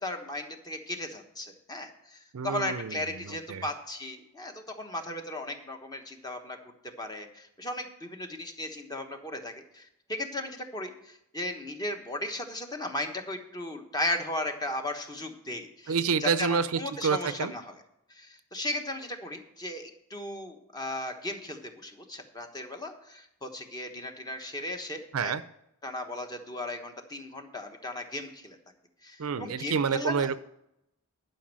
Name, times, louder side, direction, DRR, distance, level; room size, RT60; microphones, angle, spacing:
voice 1, 0.0-6.6 7.0-15.9 16.2-17.7 18.1-25.3 25.8-28.6 29.0-30.3, left 1 dB, 20° left, 5 dB, 1.2 m, -36 dB
voice 2, 2.3-3.7 15.9-17.5 25.1-25.4 29.2-30.4, right 6 dB, 75° right, 15 dB, 0.5 m, -28 dB
11.5 x 5.4 x 7.5 m, 0.81 s
head